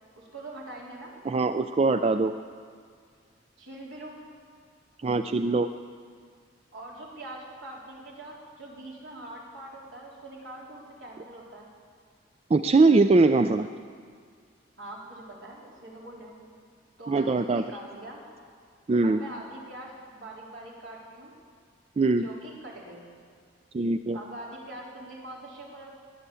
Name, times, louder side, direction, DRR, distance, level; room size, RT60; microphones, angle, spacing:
voice 1, 0.2-1.1 3.6-4.2 6.7-11.7 14.8-16.4 17.0-18.2 19.0-21.4 22.2-23.0 24.1-26.0, right 1 dB, 70° right, -3 dB, 3.7 m, -43 dB
voice 2, 1.3-2.3 5.0-5.7 12.5-13.7 17.1-17.6 18.9-19.2 22.0-22.3 23.7-24.2, right 3 dB, 30° right, 9 dB, 0.3 m, -22 dB
21.0 x 10.0 x 6.9 m, 2.1 s
head